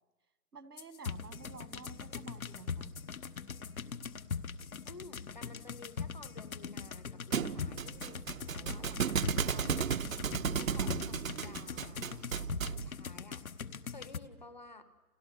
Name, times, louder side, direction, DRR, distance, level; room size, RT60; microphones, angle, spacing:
voice 1, 0.5-2.9, right 5 dB, 85° right, 11 dB, 2.4 m, -51 dB
sound 1, 0.8-14.2, left 6 dB, 65° left, 1.2 m, -42 dB
voice 2, 4.8-10.3 10.7-12.3 12.7-14.8, left 2 dB, 30° left, 12 dB, 1.0 m, -53 dB
Thump thud, 7.3-12.9, right 7 dB, 60° right, 0.8 m, -34 dB
29.0 x 29.0 x 6.9 m, 1.2 s
hypercardioid pair, 175°, 46 cm